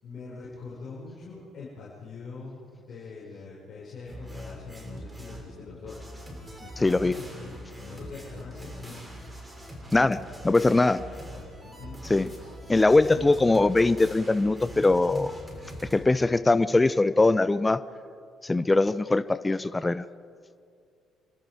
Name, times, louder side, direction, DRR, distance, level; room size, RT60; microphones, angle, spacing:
voice 1, 0.0-6.0 6.6-9.0 11.0-11.2 11.6-12.0 12.5-13.4 16.1-16.3, left 4 dB, 45° left, -7 dB, 5.9 m, -43 dB
sound 1, 4.1-5.5 5.8-16.0, equal, 15° right, 6.8 m, -42 dB
voice 2, 6.8-7.1 9.9-11.0 12.0-12.3 12.7-15.4 15.9-17.8 18.4-20.0, left 2 dB, 20° left, 17 dB, 0.6 m, -22 dB
27.0 x 24.5 x 4.9 m, 2.3 s
figure-of-eight pair, 45°, 0 cm